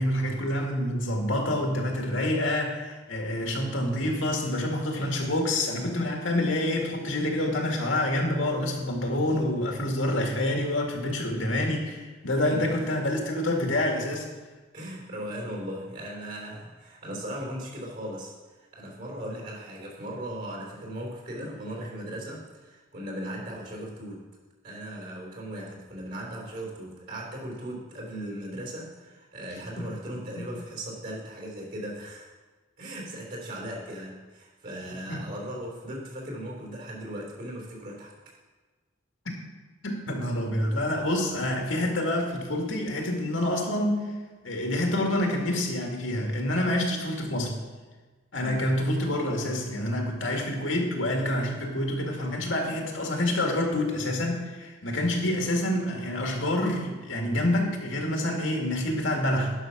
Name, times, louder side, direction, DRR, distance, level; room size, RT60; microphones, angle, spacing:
voice 1, 0.0-14.3 29.8-29.9 30.4-30.5 35.1-35.2 39.8-44.0 44.4-47.6 48.3-59.5, left 1 dB, 85° left, 1 dB, 2.0 m, -27 dB
voice 2, 12.5-12.9 14.7-24.2 24.6-32.3 32.8-38.1 48.3-48.7, right 1 dB, 50° right, -1 dB, 3.6 m, -38 dB
11.0 x 5.7 x 5.9 m, 1.3 s
head